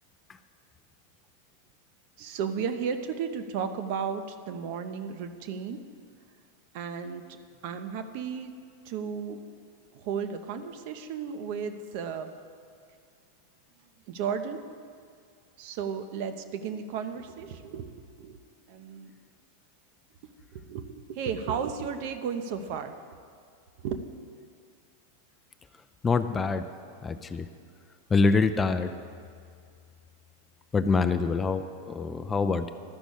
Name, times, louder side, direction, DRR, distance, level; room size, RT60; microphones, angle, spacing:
voice 1, 2.2-5.9 6.7-7.2 7.6-8.5 8.8-9.4 9.9-12.3 14.1-14.6 15.6-18.4 18.7-19.1 20.5-22.9 23.8-24.1, right 6 dB, 45° right, 8 dB, 0.7 m, -34 dB
voice 2, 26.0-26.6 27.0-27.5 28.1-28.9 30.7-32.7, left 4 dB, 15° left, 10 dB, 0.5 m, -25 dB
12.5 x 6.1 x 8.4 m, 2.3 s
figure-of-eight pair, 90°, 0 cm